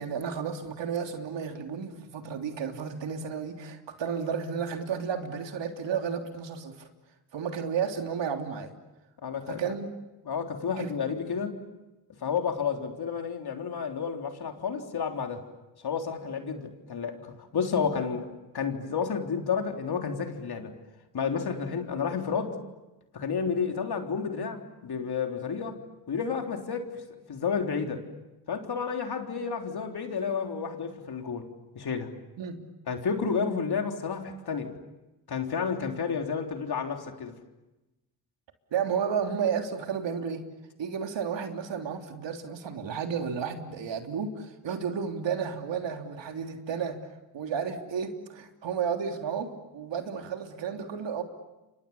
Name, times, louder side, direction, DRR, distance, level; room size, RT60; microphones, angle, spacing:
voice 1, 0.0-6.9 7.3-8.7 9.5-9.9 10.8-10.9 32.4-32.6 38.7-40.4 40.8-47.0 47.3-51.2, right 7 dB, 60° right, 4 dB, 3.3 m, -32 dB
voice 2, 9.2-9.6 10.3-11.6 12.2-15.4 15.8-20.7 21.1-22.6 23.1-25.8 26.1-26.9 27.3-28.0 28.5-31.5 31.8-32.1 32.9-34.7 35.3-37.3, left 6 dB, 50° left, 4 dB, 3.7 m, -31 dB
30.0 x 26.0 x 7.2 m, 1.0 s
supercardioid pair, 70°, 48 cm